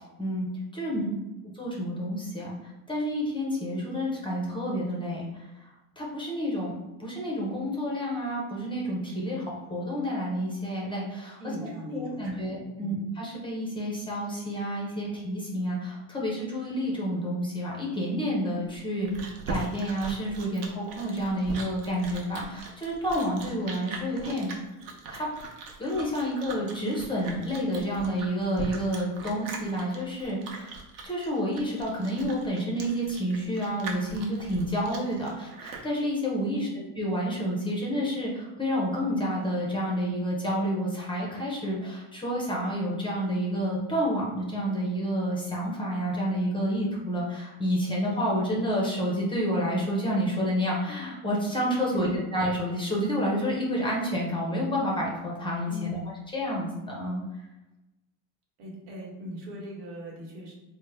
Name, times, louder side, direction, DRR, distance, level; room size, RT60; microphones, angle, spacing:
voice 1, 0.9-1.3 11.4-12.5 12.8-13.0 18.9-19.2 36.4-36.8 51.9-52.2 55.7-56.0 58.6-60.5, equal, 90° right, -3 dB, 1.2 m, -38 dB
voice 2, 1.6-2.5 2.9-5.3 6.0-6.7 7.0-11.4 11.9-19.1 19.5-24.5 25.1-25.3 25.8-30.7 31.0-36.7 37.0-56.0 56.3-57.2, equal, 10° left, -3 dB, 0.5 m, -29 dB
Chewing mastication, 18.7-35.9, right 4 dB, 50° right, 0.7 m, -40 dB
3.4 x 2.1 x 3.2 m, 1.0 s
cardioid pair, 130°, 44 cm